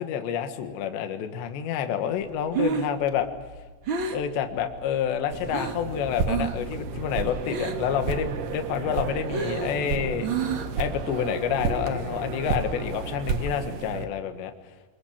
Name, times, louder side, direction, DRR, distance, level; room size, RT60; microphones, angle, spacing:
voice 1, 0.0-3.3 4.1-10.3 10.8-14.5, left 8 dB, 75° left, 7 dB, 3.7 m, -28 dB
Breathing, 2.3-5.9 6.2-6.7 7.0-8.0 8.3-10.9, right 5 dB, 85° right, 1.1 m, -30 dB
sound 1, 5.3-14.1, right 5 dB, 60° right, 2.4 m, -31 dB
27.0 x 21.0 x 7.3 m, 1.4 s
omnidirectional pair, 5.2 m